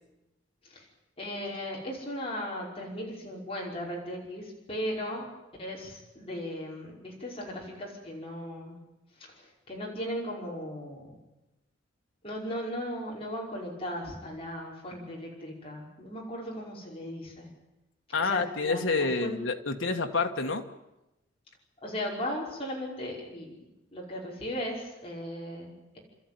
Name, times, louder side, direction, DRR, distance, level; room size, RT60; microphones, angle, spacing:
voice 1, 1.2-5.2 5.6-8.8 9.3-11.2 12.2-17.5 18.2-19.4 21.8-23.6 23.9-26.0, equal, 30° left, -2 dB, 5.4 m, -37 dB
voice 2, 18.1-20.7, left 4 dB, 85° left, 4 dB, 1.6 m, -28 dB
30.0 x 13.5 x 9.4 m, 0.98 s
head